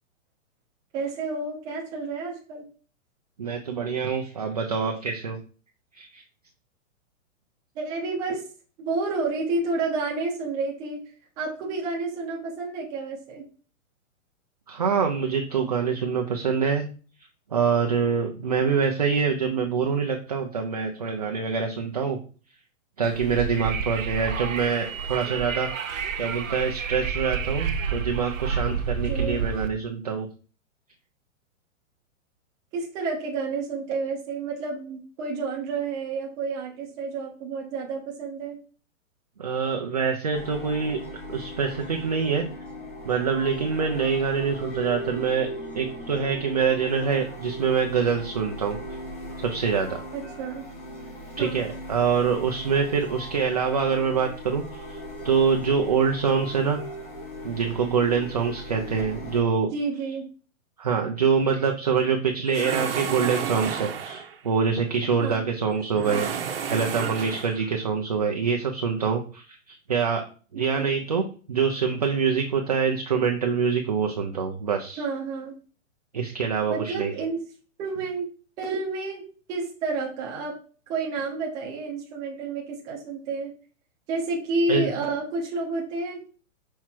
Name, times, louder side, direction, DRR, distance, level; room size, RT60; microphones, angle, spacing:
voice 1, 0.9-2.6 7.8-8.4 8.8-11.0 11.4-13.4 29.1-29.4 32.7-38.6 50.1-50.6 51.4-51.6 59.7-60.3 65.2-65.5 70.7-70.9 75.0-75.5 76.7-77.4 77.8-78.3 78.6-80.6 80.9-83.5 84.1-86.3, right 3 dB, 10° right, -2 dB, 0.8 m, -30 dB
voice 2, 3.4-5.4 5.9-6.2 14.7-16.9 17.5-22.2 23.0-30.3 39.4-41.0 41.3-42.4 43.0-45.5 45.7-49.0 49.4-50.0 51.4-56.8 57.4-59.7 60.8-66.3 66.7-70.2 70.5-75.0 76.1-77.1 84.7-84.9, right 6 dB, 30° right, 2 dB, 0.5 m, -25 dB
Wind, 23.0-29.7, right 6 dB, 75° right, 1.1 m, -30 dB
sound 1, 40.3-59.4, equal, 40° left, 3.1 m, -38 dB
sound 2, 62.5-64.4 65.9-67.7, right 7 dB, 45° right, 0.9 m, -31 dB
5.9 x 4.6 x 4.4 m, 0.37 s
hypercardioid pair, 175°, 40 cm